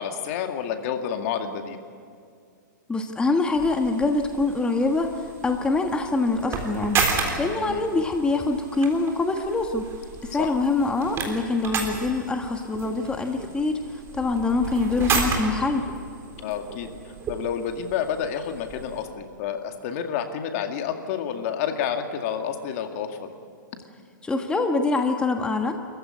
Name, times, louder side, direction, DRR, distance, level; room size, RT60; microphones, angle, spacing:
voice 1, 0.0-1.8 7.6-7.8 10.4-10.5 16.4-23.3, left 8 dB, 45° left, 5 dB, 2.2 m, -29 dB
voice 2, 2.9-7.1 7.4-9.9 10.2-15.8 24.2-25.7, left 3 dB, 10° left, 4 dB, 1.5 m, -24 dB
sound 1, 3.5-19.1, right 5 dB, 25° right, 3.8 m, -33 dB
26.5 x 15.0 x 9.8 m, 2.3 s
hypercardioid pair, 130°, 11 cm